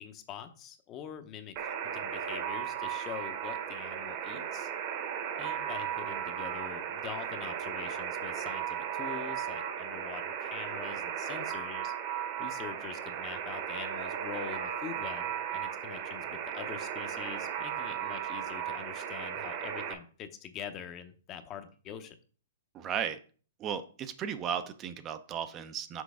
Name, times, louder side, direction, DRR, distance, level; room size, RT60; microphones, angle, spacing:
voice 1, 0.0-4.7 5.4-11.9 12.4-22.2, left 8 dB, 30° left, 9 dB, 0.7 m, -44 dB
Alarm, 1.6-19.9, right 9 dB, 40° right, 0.9 m, -36 dB
voice 2, 22.7-23.2 23.6-26.0, right 8 dB, 25° right, 10 dB, 0.5 m, -35 dB
6.2 x 4.6 x 3.5 m, 0.40 s
hypercardioid pair, 135°, 0 cm